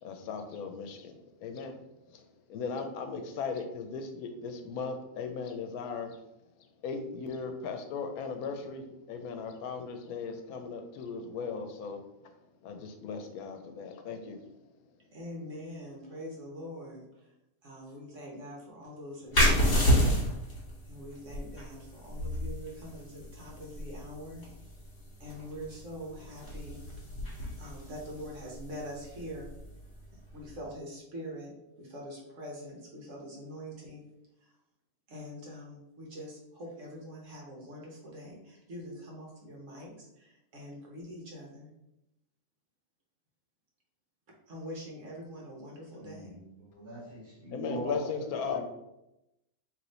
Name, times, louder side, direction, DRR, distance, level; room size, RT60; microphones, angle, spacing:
voice 1, 0.0-6.2 6.8-12.3 12.6-14.4 47.5-48.6, left 5 dB, 85° left, 6 dB, 1.1 m, -37 dB
voice 2, 15.1-17.0 17.6-20.1 20.9-24.4 25.2-26.8 27.3-29.5 30.3-31.5 31.8-34.0 35.1-41.7 44.5-46.4, equal, 60° right, -2 dB, 1.3 m, -44 dB
sound 1, 19.3-30.6, equal, 50° left, 1.8 m, -31 dB
voice 3, 46.0-48.0 48.5-48.6, right 2 dB, 40° right, -5 dB, 1.7 m, -42 dB
3.2 x 3.1 x 3.9 m, 0.88 s
omnidirectional pair, 1.5 m